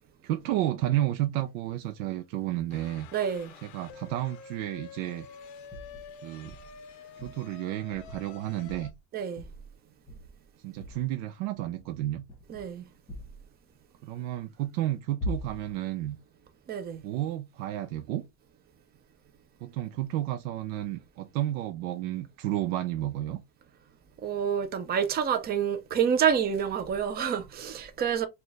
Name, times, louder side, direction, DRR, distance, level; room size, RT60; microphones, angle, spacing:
voice 1, 0.2-3.1 3.6-5.3 6.2-6.6 7.2-8.9 10.6-12.3 14.0-16.2 17.0-18.2 19.6-23.4, right 14 dB, 85° right, 0.6 m, -31 dB
sound 1, 2.7-8.9, left 7 dB, 45° left, 0.6 m, -48 dB
voice 2, 3.1-3.5 9.1-9.4 12.5-12.8 16.7-17.0 24.2-28.3, right 8 dB, 25° right, 0.5 m, -28 dB
sound 2, 5.7-6.1 6.4-6.8 7.2-7.5 7.9-8.3 8.7-9.0 9.4-9.8 10.1-10.5 10.8-11.0 11.6-11.9 12.3-12.7 13.1-13.5 15.2-15.8, left 1 dB, ahead, 1.3 m, -40 dB
4.4 x 2.4 x 3.2 m
cardioid pair, 150°, 41 cm